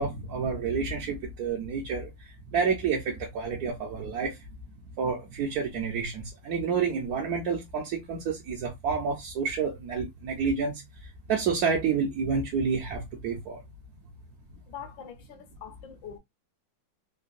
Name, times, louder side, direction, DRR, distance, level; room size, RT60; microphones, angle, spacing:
voice 1, 0.0-2.1 2.5-4.3 5.0-10.8 11.3-13.6, right 5 dB, 60° right, 1.0 m, -29 dB
voice 2, 14.7-16.2, left 8 dB, 70° left, 1.3 m, -43 dB
3.8 x 2.1 x 2.5 m
omnidirectional pair, 2.4 m